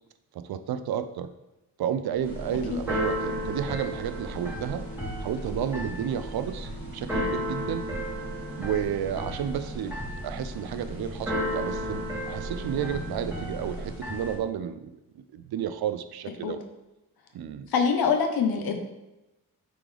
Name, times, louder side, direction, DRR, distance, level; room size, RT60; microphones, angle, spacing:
voice 1, 0.3-1.3 1.8-4.9 5.2-7.9 8.6-10.0 10.2-16.6 17.3-17.7, right 9 dB, 90° right, 11 dB, 0.5 m, -32 dB
sound 1, 2.1-14.0, equal, 20° left, 1.2 m, -43 dB
Keyboard (musical), 2.2-14.4, equal, 5° right, 2.0 m, -34 dB
voice 2, 17.7-18.8, left 6 dB, 85° left, 4 dB, 0.9 m, -24 dB
8.4 x 3.8 x 3.3 m, 0.97 s
wide cardioid pair, 115°, 36 cm